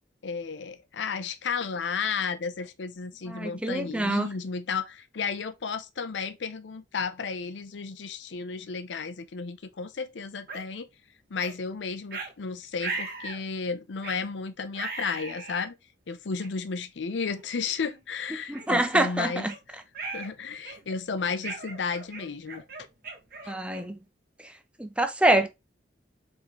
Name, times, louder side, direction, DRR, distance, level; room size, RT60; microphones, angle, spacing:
voice 1, 0.2-10.9 11.3-15.8 16.1-19.8 20.1-22.6 23.4-23.5, left 5 dB, 80° left, 0.6 m, -33 dB
voice 2, 3.3-4.3 18.5-19.5 23.5-24.0 24.8-25.5, right 1 dB, 5° right, 0.6 m, -25 dB
sound 1, 10.5-10.6 11.4-11.6 12.1-12.3 12.8-13.4 14.0-14.3 14.7-15.7 16.4-16.5 17.2-17.4 17.8-18.0 18.5-19.6 19.9-20.3 20.6-21.0 21.4-24.0, right 3 dB, 55° right, 1.4 m, -38 dB
4.8 x 3.7 x 3.0 m
head